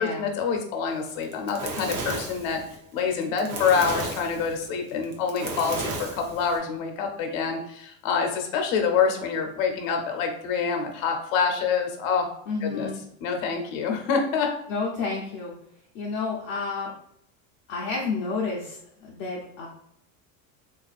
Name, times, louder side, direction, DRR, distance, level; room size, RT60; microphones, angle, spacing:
voice 1, 0.0-2.6 2.9-12.3 12.6-12.9 13.2-14.5, left 6 dB, 80° left, 3 dB, 0.8 m, -26 dB
Fire, 1.1-6.6, right 3 dB, 55° right, 0.7 m, -34 dB
voice 2, 12.5-13.0 14.7-15.5 15.9-16.9 17.7-19.7, left 4 dB, 40° left, -4 dB, 0.6 m, -30 dB
3.7 x 2.4 x 2.4 m, 0.72 s
cardioid pair, 160°, 40 cm